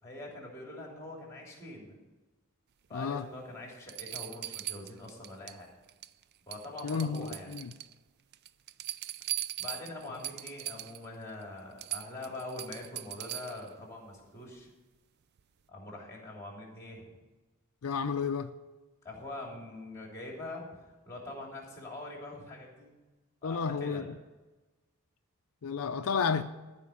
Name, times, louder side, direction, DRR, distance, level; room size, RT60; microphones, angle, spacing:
voice 1, 0.0-1.9 2.9-5.7 6.5-7.5 9.6-14.7 15.7-17.1 19.0-22.9 23.4-24.1, left 2 dB, 15° left, 3.1 m, -44 dB
voice 2, 2.9-3.3 6.8-7.7 17.8-18.5 23.4-24.0 25.6-26.4, left 6 dB, 70° left, 0.5 m, -31 dB
sound 1, 3.2-3.3 3.9-5.6 5.9-6.2 6.5-7.9 8.3-11.1 11.4-11.5 11.8-13.7 15.4-15.5, right 13 dB, 45° right, 0.4 m, -40 dB
14.0 x 5.1 x 8.5 m
head